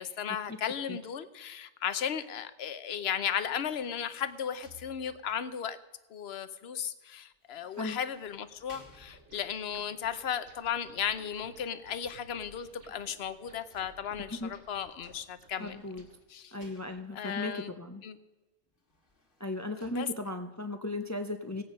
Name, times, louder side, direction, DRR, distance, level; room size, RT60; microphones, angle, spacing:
voice 1, 0.0-5.8 6.1-15.8 16.3-16.6 17.1-17.7 18.0-18.2 20.0-20.1, left 8 dB, 65° left, 12 dB, 1.0 m, -35 dB
sound 1, 3.1-5.5 7.4-9.7 12.5-14.4 15.4-17.4 18.7-19.9, left 2 dB, 50° left, 2.0 m, -61 dB
sound 2, 9.1-16.1, right 1 dB, 90° right, 2.4 m, -57 dB
voice 2, 15.6-16.0 16.5-18.0 19.4-21.6, left 2 dB, 20° left, 6 dB, 0.6 m, -36 dB
17.5 x 8.5 x 5.3 m, 1.1 s
omnidirectional pair, 1.2 m